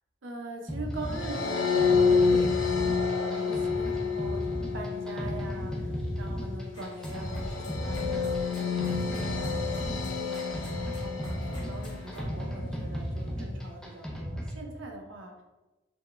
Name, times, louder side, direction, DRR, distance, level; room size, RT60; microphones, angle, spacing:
voice 1, 0.2-2.6 3.2-15.4, right 1 dB, 70° right, 2 dB, 0.6 m, -42 dB
sound 1, 0.7-14.6, equal, 5° left, 0.4 m, -35 dB
sound 2, 1.0-12.4, left 5 dB, 60° left, 0.5 m, -29 dB
sound 3, 6.7-12.3, equal, 20° left, 0.9 m, -46 dB
4.3 x 2.2 x 3.2 m, 1.1 s
head